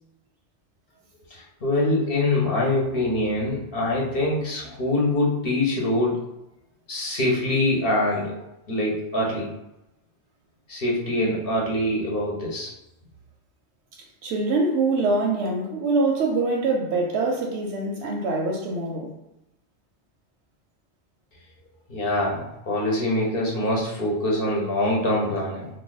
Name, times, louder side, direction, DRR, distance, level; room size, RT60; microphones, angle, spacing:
voice 1, 1.3-6.2 6.9-8.3 8.7-9.5 10.7-12.7 21.9-25.7, left 1 dB, 60° left, -3 dB, 1.2 m, -24 dB
voice 2, 14.2-19.1, right 3 dB, 85° right, -1 dB, 0.9 m, -24 dB
2.7 x 2.6 x 4.0 m, 0.89 s
omnidirectional pair, 1.1 m